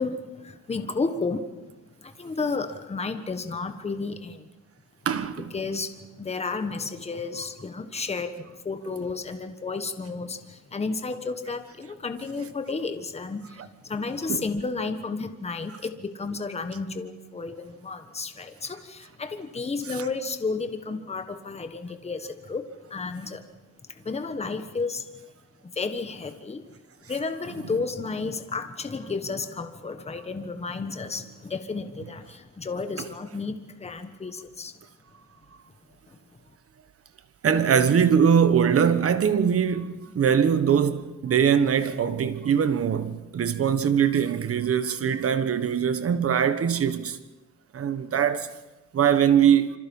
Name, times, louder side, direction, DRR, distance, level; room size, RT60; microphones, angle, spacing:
voice 1, 0.0-1.5 2.0-4.5 5.5-13.6 13.8-23.4 23.9-25.1 25.6-26.6 27.1-34.8 36.1-36.2, left 4 dB, 20° left, 1.4 m, -32 dB
voice 2, 5.0-5.5 14.3-14.4 37.4-47.2 47.7-48.5 48.9-49.7, right 8 dB, 50° right, 1.4 m, -22 dB
27.0 x 25.5 x 5.5 m
cardioid pair, 150°, 30 cm